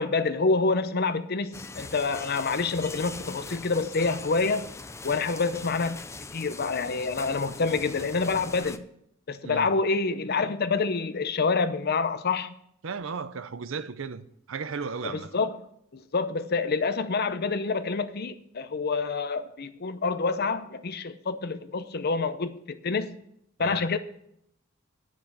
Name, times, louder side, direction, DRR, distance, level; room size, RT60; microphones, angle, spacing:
voice 1, 0.0-4.7 5.0-6.0 6.3-8.9 9.3-12.5 15.0-15.5 15.9-23.2 23.6-24.0, left 4 dB, 50° left, 0.7 m, -27 dB
sound 1, 1.5-8.8, left 3 dB, 15° left, 0.4 m, -41 dB
voice 2, 12.8-15.3 23.6-23.8, right 5 dB, 65° right, 0.6 m, -35 dB
10.0 x 6.2 x 7.2 m
head